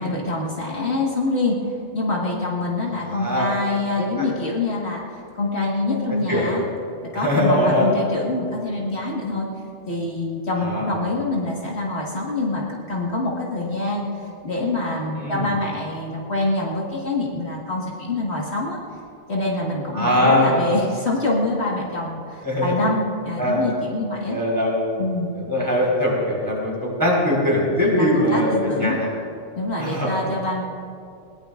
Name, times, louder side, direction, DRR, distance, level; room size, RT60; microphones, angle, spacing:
voice 1, 0.0-1.6 1.9-6.6 7.1-9.5 9.9-18.8 19.3-24.4 25.0-25.4 27.9-29.0 29.6-30.6, left 2 dB, 60° left, -3 dB, 2.0 m, -25 dB
voice 2, 3.1-3.5 4.0-4.3 6.3-6.4 7.1-7.9 10.6-11.0 15.2-15.5 19.9-20.7 22.4-22.7 23.4-23.6 24.3-24.9 25.3-28.9 29.8-30.1, left 1 dB, 15° right, -4 dB, 4.4 m, -21 dB
21.0 x 19.0 x 2.5 m, 2.4 s
omnidirectional pair, 1.3 m